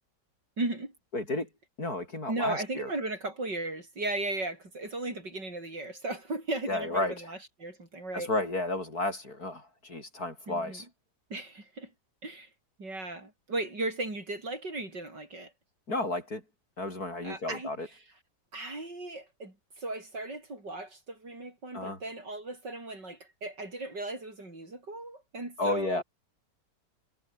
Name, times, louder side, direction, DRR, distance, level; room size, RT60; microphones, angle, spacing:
voice 1, 0.6-0.9 2.3-8.3 10.5-10.9 11.3-11.9 12.2-12.5 12.8-15.5 17.2-17.7 18.5-26.0, right 2 dB, 80° right, 8.0 m, -36 dB
voice 2, 1.1-1.5 1.8-2.9 6.7-7.1 8.1-10.9 15.9-16.4 16.8-17.9 21.7-22.0 25.6-26.0, left 2 dB, 60° left, 7.2 m, -32 dB
omnidirectional pair, 1.9 m